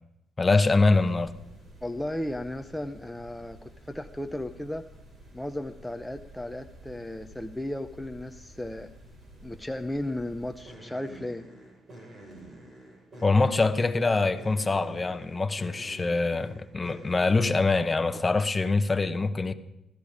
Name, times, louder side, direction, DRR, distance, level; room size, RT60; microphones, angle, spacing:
voice 1, 0.4-1.3 13.2-19.5, left 3 dB, 25° left, 1.0 m, -24 dB
sound 1, 0.6-18.0, right 1 dB, 35° right, 6.0 m, -49 dB
voice 2, 1.8-4.9 5.3-8.9 9.4-11.5, left 1 dB, 5° left, 0.7 m, -35 dB
16.0 x 13.5 x 5.1 m
cardioid pair, 90°, 0 cm